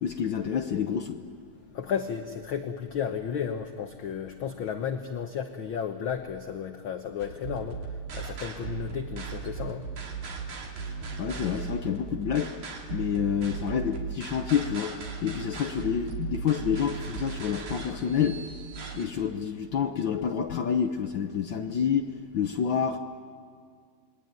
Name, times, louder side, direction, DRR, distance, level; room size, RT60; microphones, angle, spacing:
voice 1, 0.0-1.2 11.2-12.5 12.9-18.4 18.9-23.0, left 8 dB, 85° left, 1.0 m, -28 dB
voice 2, 1.7-9.8, left 8 dB, 60° left, 1.4 m, -33 dB
sound 1, 7.2-19.0, right 5 dB, 90° right, 4.2 m, -37 dB
27.5 x 21.5 x 9.5 m
omnidirectional pair, 3.3 m